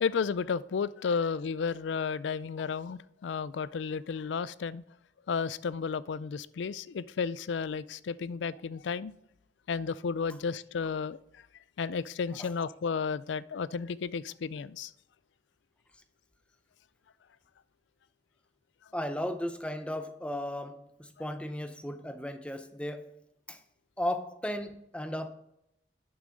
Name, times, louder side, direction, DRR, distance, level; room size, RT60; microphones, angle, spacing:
voice 1, 0.0-4.8 5.3-9.1 9.7-11.2 11.8-14.9, left 5 dB, 80° left, 0.4 m, -33 dB
voice 2, 18.9-23.2 23.5-23.6 24.0-25.3, left 1 dB, 5° left, 0.6 m, -35 dB
11.5 x 7.0 x 3.9 m
head